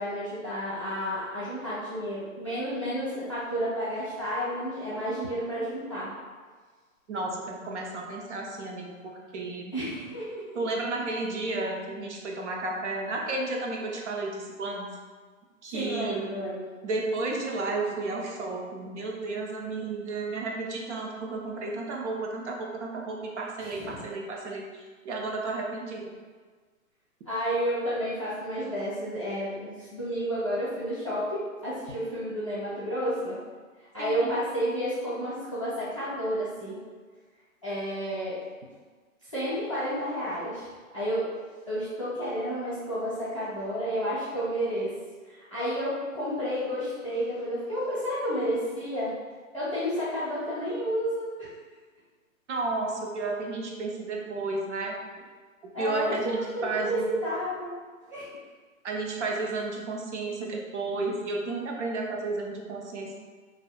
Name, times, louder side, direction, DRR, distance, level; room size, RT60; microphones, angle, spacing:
voice 1, 0.0-6.1 9.7-10.4 15.7-16.6 23.6-24.0 27.3-33.4 33.8-36.8 37.6-38.4 39.2-41.3 41.7-44.9 45.2-49.1 49.5-51.5 55.7-57.7 58.1-58.3, equal, 25° left, -11 dB, 0.3 m, -31 dB
voice 2, 7.1-9.7 10.5-14.9 15.6-16.2 16.8-24.6 25.0-26.1 34.0-34.3 52.5-55.0 55.6-57.1 58.8-63.2, right 3 dB, 60° right, 0 dB, 0.5 m, -32 dB
2.7 x 2.0 x 2.3 m, 1.5 s
hypercardioid pair, 165°, 41 cm